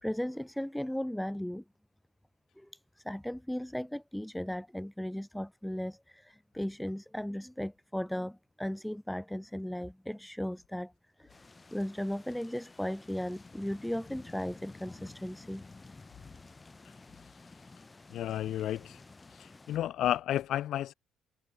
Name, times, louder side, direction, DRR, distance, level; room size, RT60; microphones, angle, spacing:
voice 1, 0.0-1.6 2.6-10.9 11.2-11.4 11.7-15.6, equal, 5° left, 0.8 m, -36 dB
sound 1, 11.3-19.8, left 3 dB, 20° left, 2.3 m, -52 dB
voice 2, 18.1-19.0 19.4-20.9, left 12 dB, 70° left, 0.5 m, -32 dB
cardioid pair, 85°, 0 cm